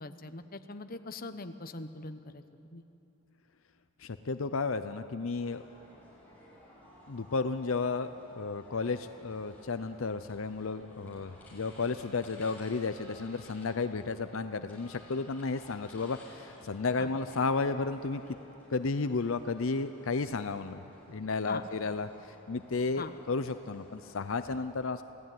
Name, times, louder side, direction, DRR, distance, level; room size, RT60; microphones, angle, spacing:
voice 1, 0.0-2.4 2.7-2.8 17.0-17.1 21.5-21.6 23.0-23.1, left 3 dB, 45° left, 9 dB, 1.0 m, -41 dB
voice 2, 4.0-5.6 7.1-18.2 18.7-25.0, left 4 dB, 70° left, 10 dB, 0.6 m, -33 dB
sound 1, 5.4-24.5, left 1 dB, 10° left, 6.0 m, -55 dB
27.0 x 16.5 x 9.4 m, 2.9 s
head